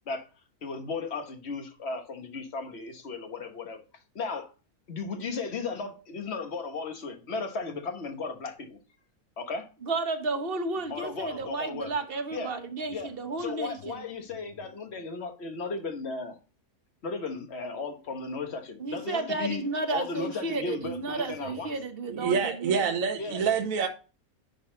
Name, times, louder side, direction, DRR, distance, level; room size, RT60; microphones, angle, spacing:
voice 1, 0.6-3.8 4.1-4.5 4.9-8.8 9.4-9.7 10.9-11.9 12.3-12.5 12.9-13.1 13.4-16.4 17.0-19.6 19.9-21.7 23.2-23.4, left 4 dB, 50° left, 1.4 m, -35 dB
voice 2, 9.8-14.0 18.8-22.9, right 3 dB, 45° right, 1.1 m, -32 dB
voice 3, 22.1-23.9, right 6 dB, 65° right, 1.3 m, -27 dB
11.0 x 4.1 x 3.8 m
omnidirectional pair, 1.6 m